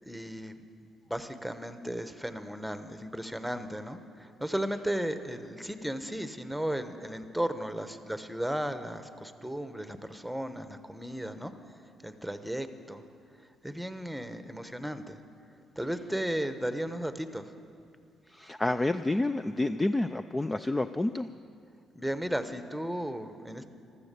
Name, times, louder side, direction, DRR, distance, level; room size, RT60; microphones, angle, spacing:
voice 1, 0.0-0.7 1.1-11.5 12.0-13.0 13.3-15.2 15.8-17.5 21.9-23.7, equal, ahead, 9 dB, 1.0 m, -35 dB
voice 2, 18.3-21.3, left 2 dB, 15° left, 10 dB, 0.4 m, -29 dB
14.0 x 13.0 x 6.9 m, 2.5 s
cardioid pair, 80°, 0 cm